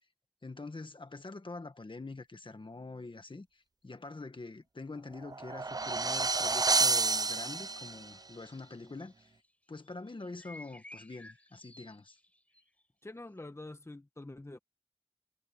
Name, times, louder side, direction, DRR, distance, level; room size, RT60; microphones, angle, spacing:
voice 1, 0.4-9.3 9.7-12.2, left 3 dB, 65° left, 1.6 m, -45 dB
sound 1, 5.1-8.1, right 3 dB, 45° right, 0.4 m, -29 dB
sound 2, 8.3-9.5 9.9-12.6, left 1 dB, 15° left, 4.3 m, -53 dB
voice 2, 13.0-14.6, left 2 dB, 30° left, 1.2 m, -46 dB
wide cardioid pair, 55°, 9 cm